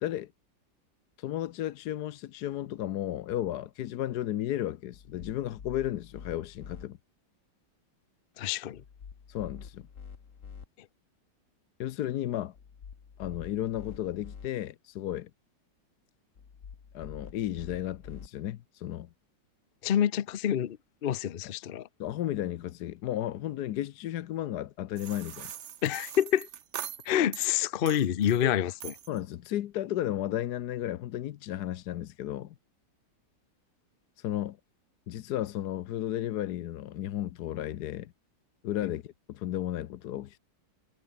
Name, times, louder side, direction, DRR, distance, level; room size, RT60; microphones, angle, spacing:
voice 1, 0.0-0.3 1.2-7.0 9.3-9.9 11.8-12.5 13.2-15.3 16.9-19.1 21.4-21.5 22.0-25.5 28.4-28.5 29.1-32.5 34.2-34.6 35.1-38.1 38.6-40.4, left 12 dB, 65° left, 1.2 m, -34 dB
sound 1, 4.9-6.9 8.7-10.7 12.5-14.5 16.4-18.3, left 6 dB, 45° left, 1.7 m, -47 dB
voice 2, 8.4-8.8 19.8-21.9 25.8-26.5 27.1-28.9, left 10 dB, 90° left, 0.4 m, -27 dB
sound 2, 25.0-27.5 27.9-28.4 28.8-29.2, right 9 dB, 50° right, 0.9 m, -42 dB
omnidirectional pair, 2.0 m